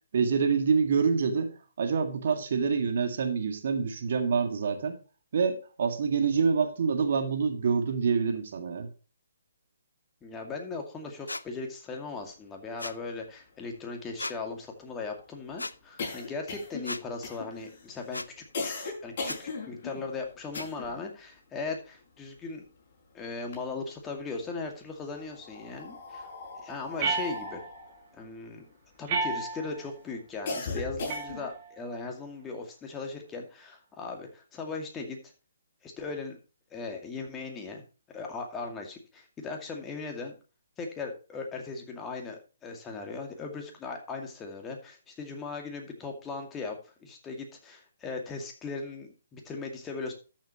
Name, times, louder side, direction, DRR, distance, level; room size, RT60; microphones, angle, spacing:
voice 1, 0.1-5.0 5.3-8.9, right 5 dB, 55° right, 6 dB, 1.9 m, -26 dB
voice 2, 10.2-22.7 23.1-26.3 26.6-27.6 28.1-28.7 29.0-35.2 35.8-36.4 36.7-37.8 38.1-40.3 40.8-50.1, left 4 dB, 15° left, 2 dB, 2.3 m, -38 dB
sound 1, 11.3-11.4 12.8-13.0 14.2-14.4 15.6-15.7 16.8-17.0 18.1-18.3 19.2-19.4 20.5-20.7, left 2 dB, 85° left, 0.6 m, -36 dB
sound 2, 13.2-13.3 13.6-21.1 21.4-22.9 23.3-24.2 25.0-29.4 29.9-31.6, left 3 dB, 40° left, 5.9 m, -39 dB
sound 3, 27.0-27.9 29.1-29.9 31.1-31.9, right 3 dB, 30° right, 2.6 m, -32 dB
13.0 x 7.3 x 3.0 m, 0.33 s
figure-of-eight pair, 140°, 0 cm